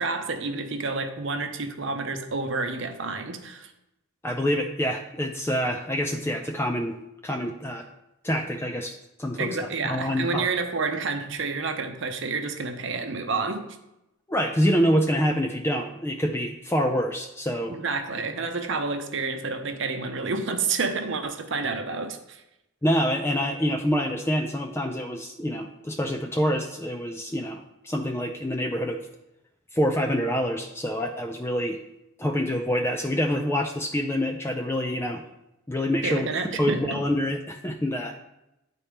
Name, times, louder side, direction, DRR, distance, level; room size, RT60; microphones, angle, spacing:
voice 1, 0.0-3.7 9.4-13.7 17.7-22.4 36.0-37.0, right 4 dB, 60° right, 0.7 m, -29 dB
voice 2, 4.2-7.0 7.2-7.9 8.2-9.6 9.8-10.5 14.3-17.8 22.8-29.0 29.7-31.8 32.2-35.2 35.7-38.1, equal, 10° left, 0.4 m, -26 dB
10.0 x 4.2 x 3.4 m
head